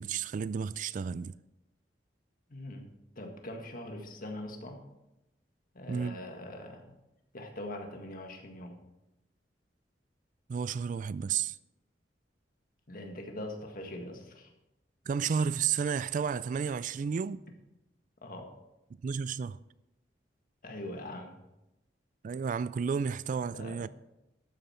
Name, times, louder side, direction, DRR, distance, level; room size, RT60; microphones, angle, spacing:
voice 1, 0.0-1.3 5.9-6.2 10.5-11.6 15.1-17.4 19.0-19.6 22.2-23.9, right 6 dB, 45° right, 0.3 m, -32 dB
voice 2, 2.5-2.9 3.1-4.8 5.7-6.9 7.3-8.8 12.9-14.5 18.2-18.6 20.6-21.4 23.5-23.9, left 1 dB, 50° left, 1.7 m, -42 dB
12.5 x 9.0 x 4.4 m
head